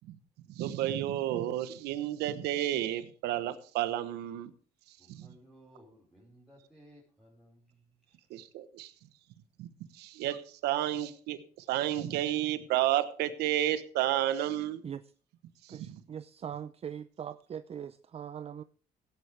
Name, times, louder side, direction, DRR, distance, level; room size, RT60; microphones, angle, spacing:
voice 1, 0.5-4.5 4.9-5.3 8.3-8.9 9.6-14.8 15.6-16.0, right 13 dB, 90° right, 12 dB, 1.1 m, -32 dB
voice 2, 5.0-8.3, right 1 dB, 5° right, -7 dB, 5.0 m, -59 dB
voice 3, 15.7-18.6, right 8 dB, 40° right, 13 dB, 0.5 m, -41 dB
17.0 x 9.8 x 3.4 m, 0.42 s
cardioid pair, 90°, 17 cm